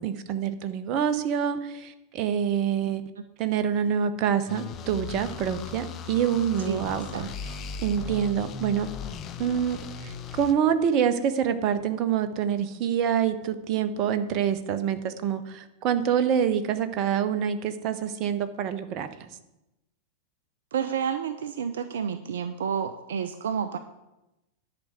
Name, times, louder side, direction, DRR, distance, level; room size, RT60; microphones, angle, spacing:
voice 1, 0.0-3.0 3.4-7.3 7.8-8.9 9.4-19.3, right 8 dB, 40° right, 10 dB, 0.9 m, -26 dB
sound 1, 4.5-10.5, left 6 dB, 30° left, 0.8 m, -38 dB
voice 2, 6.6-7.3 20.7-23.8, right 7 dB, 60° right, 10 dB, 0.5 m, -30 dB
10.5 x 5.1 x 8.1 m, 0.94 s
figure-of-eight pair, 90°, 0 cm